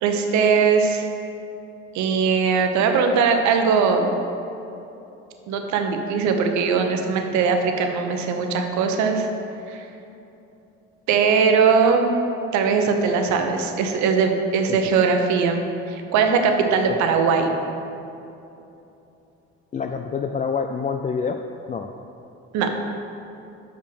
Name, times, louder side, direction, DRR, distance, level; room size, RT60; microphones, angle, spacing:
voice 1, 0.0-1.1 1.9-4.1 5.5-9.3 9.7-9.9 11.1-12.1 12.5-17.5 22.5-22.7, right 5 dB, 75° right, 5 dB, 0.9 m, -20 dB
voice 2, 19.7-21.9, left 5 dB, 25° left, 5 dB, 0.4 m, -27 dB
6.5 x 5.6 x 6.3 m, 2.8 s
supercardioid pair, 70°, 29 cm